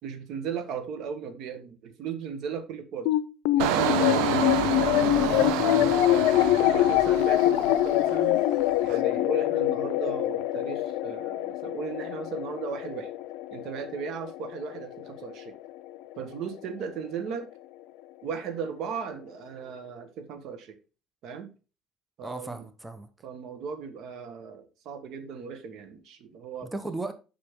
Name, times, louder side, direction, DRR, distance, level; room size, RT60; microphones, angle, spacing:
voice 1, 0.0-3.1 3.5-4.4 6.1-8.4 8.8-13.1 13.5-15.5 16.1-17.5 18.2-20.8 21.2-21.5 22.2-22.7 23.2-26.7, right 6 dB, 65° right, 1.4 m, -37 dB
sound 1, 3.1-15.7, left 14 dB, 80° left, 0.5 m, -25 dB
Engine, 3.6-8.3 8.6-9.0, right 9 dB, 85° right, 0.9 m, -29 dB
voice 2, 5.1-6.0 22.2-23.1 26.6-27.1, right 2 dB, 15° right, 0.9 m, -37 dB
6.8 x 5.9 x 3.7 m
supercardioid pair, 85°, 0 cm